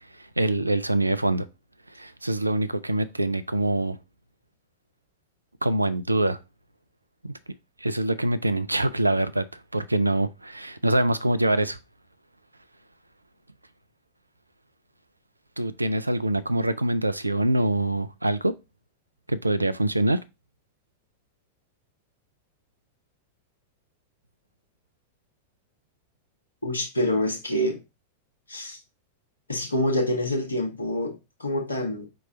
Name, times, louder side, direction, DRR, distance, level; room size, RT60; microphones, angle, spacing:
voice 1, 0.2-1.5 1.9-4.0 5.6-6.4 7.2-7.3 7.8-9.4 9.7-11.8 15.6-18.5 19.3-20.2, right 1 dB, 85° right, 0.3 m, -24 dB
voice 2, 26.6-27.8 28.5-28.8 29.5-32.1, left 1 dB, 75° left, 1.0 m, -26 dB
4.6 x 2.9 x 3.7 m
figure-of-eight pair, 90°, 0 cm